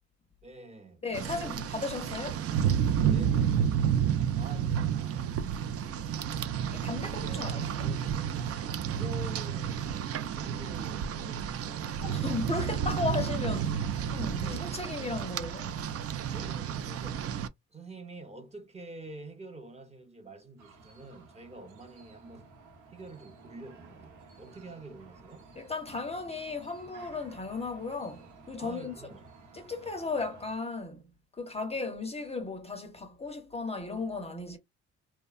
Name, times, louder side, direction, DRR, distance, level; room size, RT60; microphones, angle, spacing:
voice 1, 0.4-1.7 2.1-3.7 4.3-5.7 7.1-12.0 14.4-14.8 16.2-17.2 17.7-22.5 22.9-25.5 28.6-29.3, right 3 dB, 20° right, 0.7 m, -47 dB
voice 2, 1.0-2.4 6.7-7.9 12.0-15.9 25.6-28.9 29.5-31.1 31.4-34.6, left 3 dB, 20° left, 0.6 m, -35 dB
Rain, 1.1-17.5, right 8 dB, 50° right, 0.4 m, -31 dB
sound 1, 20.6-30.6, right 3 dB, 80° right, 0.9 m, -54 dB
2.7 x 2.1 x 2.3 m
cardioid pair, 90°, 30 cm